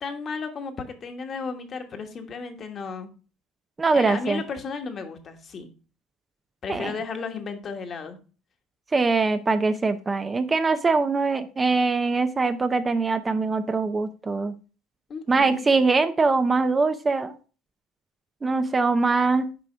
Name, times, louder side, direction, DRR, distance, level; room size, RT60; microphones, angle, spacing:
voice 1, 0.0-3.1 3.9-5.7 6.6-8.2 15.1-15.6, left 5 dB, 40° left, 6 dB, 1.4 m, -34 dB
voice 2, 3.8-4.4 6.7-6.9 8.9-14.5 15.3-17.3 18.4-19.5, right 3 dB, 25° right, 10 dB, 0.6 m, -22 dB
6.9 x 4.8 x 4.4 m, 0.36 s
supercardioid pair, 85°, 0 cm